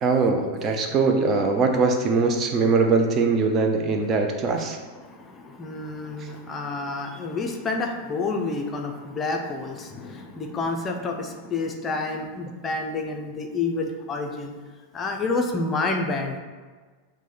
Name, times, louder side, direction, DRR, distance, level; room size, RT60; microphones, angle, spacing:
voice 1, 0.0-4.8, right 4 dB, 30° right, 4 dB, 0.4 m, -21 dB
voice 2, 5.0-14.5 14.9-16.4, left 3 dB, 20° left, 3 dB, 0.5 m, -29 dB
4.6 x 2.1 x 4.1 m, 1.4 s
figure-of-eight pair, 90°, 0 cm